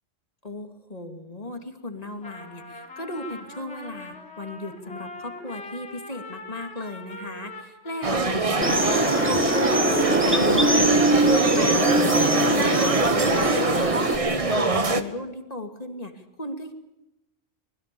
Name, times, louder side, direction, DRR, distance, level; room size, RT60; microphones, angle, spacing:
voice 1, 0.4-16.7, left 1 dB, 30° left, 6 dB, 2.7 m, -37 dB
Trumpet, 2.0-12.9, left 2 dB, 65° left, 5.2 m, -41 dB
sound 1, 8.0-15.0, right 3 dB, 30° right, 1.3 m, -24 dB
sound 2, 8.6-14.2, right 1 dB, 10° right, 2.0 m, -22 dB
25.0 x 21.0 x 6.9 m, 0.91 s
omnidirectional pair, 1.3 m